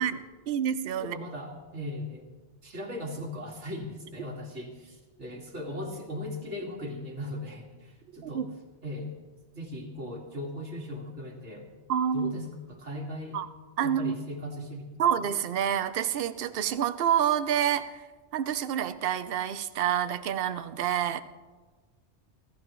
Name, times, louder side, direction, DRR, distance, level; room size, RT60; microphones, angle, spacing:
voice 1, 0.0-1.2 8.2-8.5 11.9-12.5 13.3-13.5 13.8-14.2 15.0-17.9 18.3-21.2, right 9 dB, 60° right, 12 dB, 0.8 m, -28 dB
voice 2, 1.0-2.3 2.6-8.5 8.8-9.1 9.5-11.7 12.1-13.4 13.8-15.1, left 1 dB, 85° right, 0 dB, 2.5 m, -38 dB
25.5 x 14.5 x 3.1 m, 1.4 s
omnidirectional pair, 1.2 m